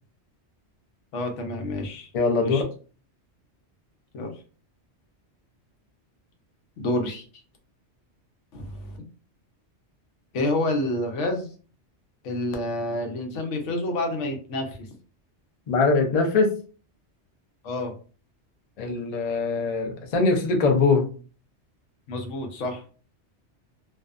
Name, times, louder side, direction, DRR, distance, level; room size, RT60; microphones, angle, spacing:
voice 1, 1.1-2.1 2.4-2.6 4.1-4.3 6.8-7.2 8.5-9.0 10.3-11.5 12.2-14.9 17.6-17.9 22.1-22.8, left 1 dB, 90° left, 4 dB, 1.0 m, -28 dB
voice 2, 2.1-2.6 15.7-16.5 18.8-21.1, left 4 dB, 50° left, 3 dB, 0.4 m, -22 dB
2.6 x 2.1 x 2.3 m, 0.38 s
omnidirectional pair, 1.2 m